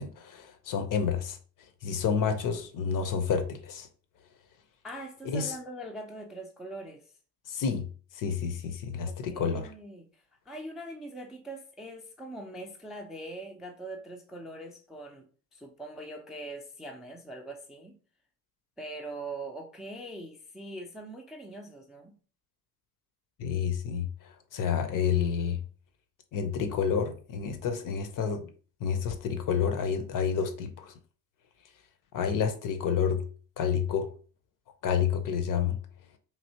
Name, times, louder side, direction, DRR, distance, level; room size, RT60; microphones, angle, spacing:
voice 1, 0.0-1.4 1.8-3.9 5.3-5.5 7.5-7.9 8.2-9.7 23.4-24.1 24.5-25.6 26.3-28.5 28.8-30.9 32.1-33.2 33.6-34.1 34.8-35.8, left 7 dB, 40° left, 0.6 m, -29 dB
voice 2, 4.8-7.1 9.0-15.3 15.5-17.9 18.8-22.1, right 1 dB, ahead, 0.4 m, -42 dB
3.2 x 2.7 x 2.7 m
figure-of-eight pair, 50°, 49 cm